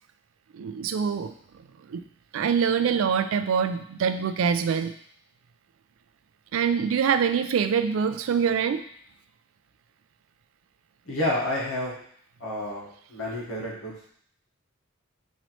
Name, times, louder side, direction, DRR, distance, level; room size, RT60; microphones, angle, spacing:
voice 1, 0.5-1.3 1.9-2.0 2.3-4.9 6.5-8.8, right 7 dB, 70° right, 10 dB, 0.3 m, -24 dB
voice 2, 11.0-12.0 12.4-14.1, left 1 dB, 80° left, -5 dB, 1.4 m, -30 dB
4.0 x 3.0 x 3.1 m, 0.63 s
head